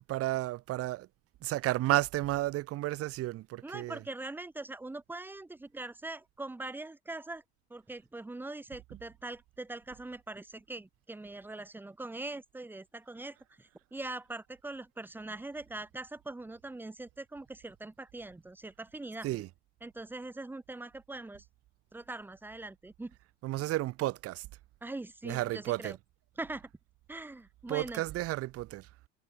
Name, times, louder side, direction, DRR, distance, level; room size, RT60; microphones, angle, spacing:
voice 1, 0.1-1.1 1.4-4.0 19.2-19.5 23.4-24.5 25.2-26.0 27.7-28.9, right 17 dB, 45° right, 0.8 m, -32 dB
voice 2, 3.6-7.4 7.7-19.3 19.8-21.4 21.9-23.1 24.8-26.0 26.4-26.7 27.1-28.0, right 2 dB, 5° right, 0.8 m, -42 dB
cardioid pair, 145°, 34 cm